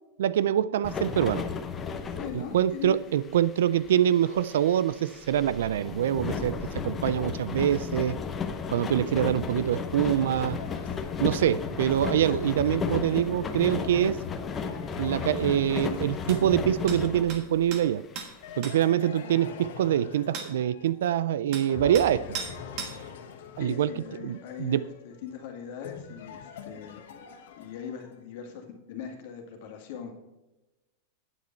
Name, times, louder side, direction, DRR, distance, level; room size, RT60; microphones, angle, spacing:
voice 1, 0.2-1.4 2.5-6.6 6.8-8.2 8.7-10.6 11.2-14.2 15.0-18.0 18.6-22.2 23.6-23.9 24.2-24.8, right 10 dB, 85° right, 0.3 m, -25 dB
sound 1, 0.8-17.7 18.2-18.3 18.5-18.6, left 5 dB, 15° left, 0.6 m, -34 dB
voice 2, 2.1-3.0 23.6-27.0 27.6-30.1, left 7 dB, 50° left, 1.9 m, -40 dB
sound 2, 9.7-17.1 18.4-21.3 21.7-28.2, left 6 dB, 65° left, 1.5 m, -45 dB
sound 3, 16.3-16.4 16.9-17.0 17.3-17.4 17.7-17.8 18.2-18.3 18.6-18.8 20.3-20.5 21.5-21.7 21.9-22.1 22.3-22.5 22.8-23.0, right 5 dB, 35° right, 1.3 m, -36 dB
9.3 x 8.4 x 4.5 m
supercardioid pair, 180°, 0 cm